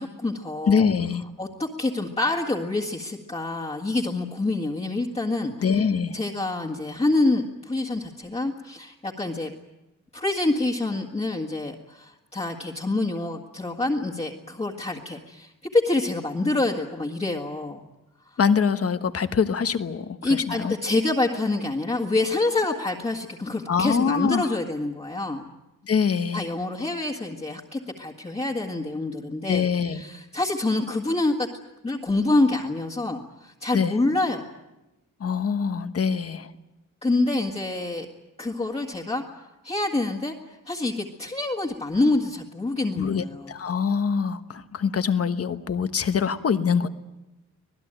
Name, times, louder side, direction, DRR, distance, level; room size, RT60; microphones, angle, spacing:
voice 1, 0.0-0.9 1.4-5.8 6.1-9.5 10.1-17.8 18.3-18.4 20.2-25.5 26.3-31.5 31.8-34.4 37.0-38.1 38.4-39.2 39.6-40.3 40.7-43.5, left 2 dB, 20° left, -3 dB, 1.9 m, -26 dB
voice 2, 0.7-1.2 5.6-6.2 18.4-20.7 23.7-24.6 25.8-26.5 29.5-30.0 33.7-34.0 35.2-36.5 43.0-46.9, left 6 dB, 45° left, 10 dB, 1.2 m, -24 dB
25.5 x 19.0 x 9.0 m, 0.98 s
wide cardioid pair, 170°, 32 cm